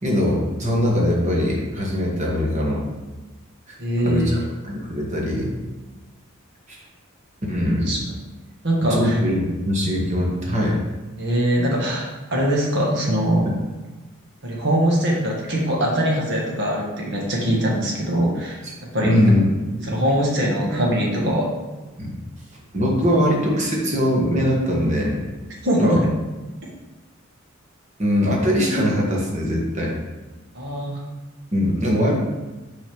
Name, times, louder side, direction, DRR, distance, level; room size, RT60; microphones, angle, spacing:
voice 1, 0.0-2.8 3.7-3.8 4.0-5.5 6.7-6.8 7.5-8.0 8.9-10.8 18.6-18.7 19.0-19.4 19.8-19.9 22.0-22.1 22.7-25.2 25.7-26.0 28.0-29.9 31.5-32.1, equal, 35° right, -2 dB, 1.5 m, -21 dB
voice 2, 3.8-4.4 7.9-8.0 8.6-9.2 11.2-13.5 14.4-18.6 18.9-19.2 19.8-21.5 25.6-26.0 30.5-31.0, equal, 55° right, -3 dB, 1.7 m, -22 dB
6.2 x 4.1 x 5.4 m, 1.2 s
head